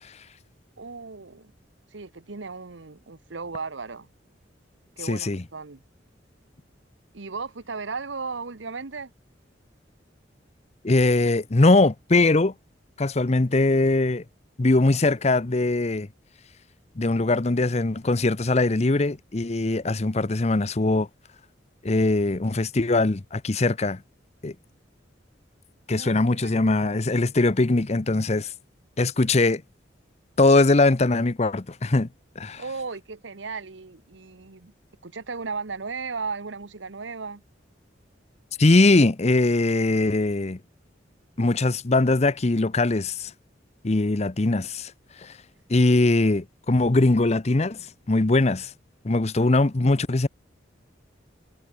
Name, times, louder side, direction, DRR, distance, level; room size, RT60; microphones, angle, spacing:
voice 1, 0.8-1.5 1.9-4.1 5.0-5.8 7.1-9.1 25.9-26.7 32.6-34.7 35.0-37.4, right 4 dB, 85° right, 1.1 m, -36 dB
voice 2, 5.0-5.4 10.8-12.5 13.0-14.2 14.6-16.1 17.0-21.1 21.8-24.0 24.4-24.5 25.9-28.5 29.0-29.6 30.4-32.1 32.4-32.6 38.6-40.6 41.4-43.3 43.8-44.9 45.2-45.3 45.7-47.8 48.1-48.7 49.0-50.3, left 2 dB, 35° left, 0.8 m, -21 dB
head